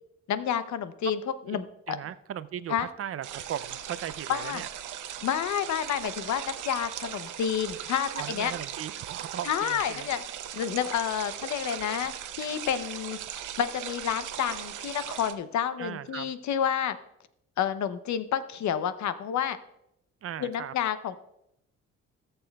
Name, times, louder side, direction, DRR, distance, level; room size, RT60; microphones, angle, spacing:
voice 1, 0.3-1.2 1.5-2.0 2.7-2.9 4.3-4.6 5.2-8.5 9.4-10.2 10.5-13.2 13.6-17.0 17.6-19.6 20.4-21.2, left 9 dB, 70° left, 12 dB, 0.7 m, -29 dB
voice 2, 1.5-4.7 8.1-10.1 15.8-16.3 20.2-20.7, right 10 dB, 50° right, 15 dB, 0.5 m, -38 dB
sound 1, 3.2-15.3, right 10 dB, 85° right, 0.8 m, -39 dB
17.5 x 6.9 x 2.3 m, 0.81 s
cardioid pair, 90°, 30 cm